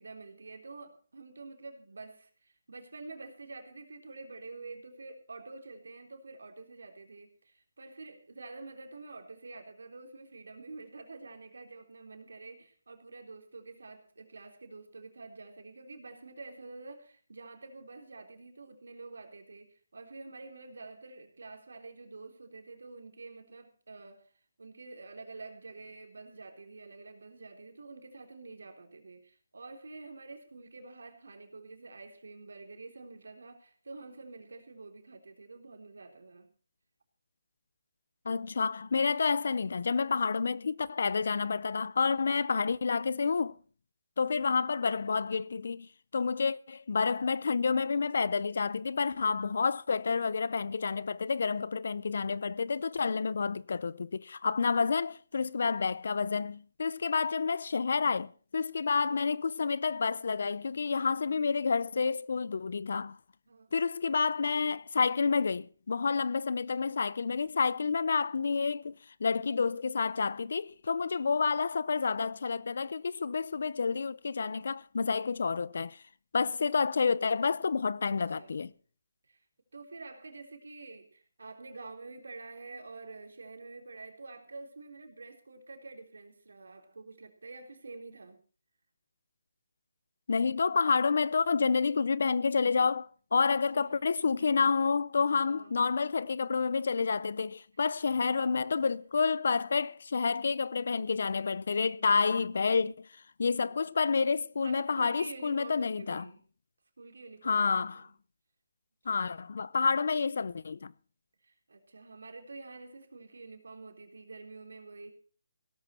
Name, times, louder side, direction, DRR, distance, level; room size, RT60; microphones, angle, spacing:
voice 1, 0.0-24.3 24.6-36.5 44.3-44.6 58.8-59.4 61.2-61.6 63.5-63.7 78.1-78.7 79.3-79.4 79.7-88.4 93.7-94.0 94.4-94.5 94.8-94.9 95.4-95.8 98.0-98.7 99.4-99.7 103.4-103.8 104.6-106.5 107.0-108.1 111.4-115.1, right 3 dB, 80° right, 3.5 m, -48 dB
voice 2, 38.2-43.6 44.2-63.2 63.7-68.9 69.2-76.0 76.3-78.7 90.3-103.1 103.4-106.3 107.4-108.1 109.1-110.9, left 5 dB, 65° left, 0.6 m, -29 dB
17.0 x 12.5 x 4.4 m
hypercardioid pair, 160°, 0 cm